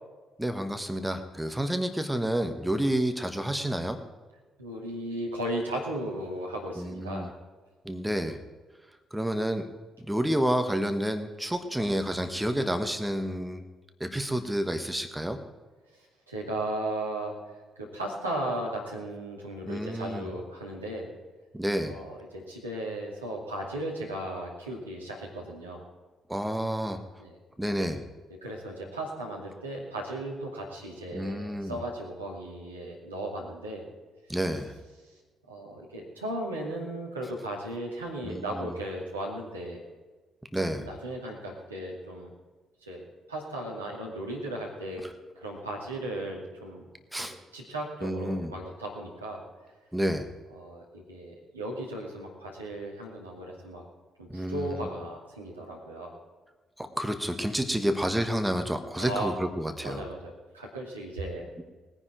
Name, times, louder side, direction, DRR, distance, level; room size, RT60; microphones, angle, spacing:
voice 1, 0.4-4.0 6.8-7.3 7.8-8.4 9.1-9.7 10.0-13.6 14.0-15.4 19.7-20.3 21.5-22.0 26.3-27.0 27.6-28.0 31.1-31.8 34.3-34.7 38.2-38.7 40.5-40.9 47.1-47.4 48.0-48.5 49.9-50.3 54.3-54.9 56.8-60.0, equal, 10° right, 8 dB, 1.4 m, -29 dB
voice 2, 4.6-7.4 16.3-17.5 17.8-21.1 21.9-25.8 27.2-27.4 28.4-33.8 35.5-39.8 40.8-42.3 42.8-43.0 43.3-45.0 45.4-46.8 47.2-49.4 50.5-53.8 54.2-56.1 59.0-59.3 59.8-61.4, right 1 dB, 85° right, -2 dB, 2.3 m, -36 dB
20.0 x 10.0 x 4.6 m, 1.3 s
figure-of-eight pair, 40°, 0 cm